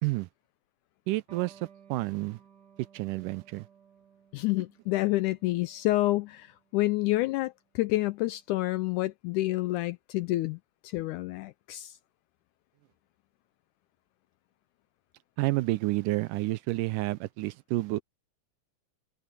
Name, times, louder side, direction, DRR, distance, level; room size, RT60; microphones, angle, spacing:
voice 1, 1.1-2.4 2.9-3.7 15.4-18.0, right 19 dB, 80° right, 2.0 m, -30 dB
Electric guitar, 1.3-8.4, right 7 dB, 50° right, 4.9 m, -59 dB
voice 2, 4.3-12.0, left 18 dB, 80° left, 1.8 m, -29 dB
omnidirectional pair, 4.0 m